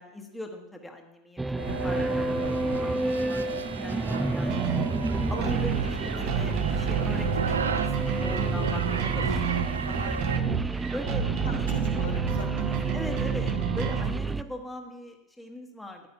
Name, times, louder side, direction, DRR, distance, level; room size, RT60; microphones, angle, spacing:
voice 1, 0.0-4.8 5.3-10.5 10.9-11.7 12.9-16.1, left 1 dB, 5° left, 3 dB, 1.4 m, -41 dB
sound 1, 1.4-14.4, right 3 dB, 10° right, 0.4 m, -30 dB
sound 2, 1.6-10.4, right 6 dB, 75° right, 0.4 m, -35 dB
sound 3, 4.5-14.1, right 7 dB, 50° right, 1.1 m, -30 dB
voice 2, 11.1-13.2, left 2 dB, 80° left, -1 dB, 2.2 m, -42 dB
13.5 x 10.5 x 2.9 m, 0.96 s
figure-of-eight pair, 80°, 0 cm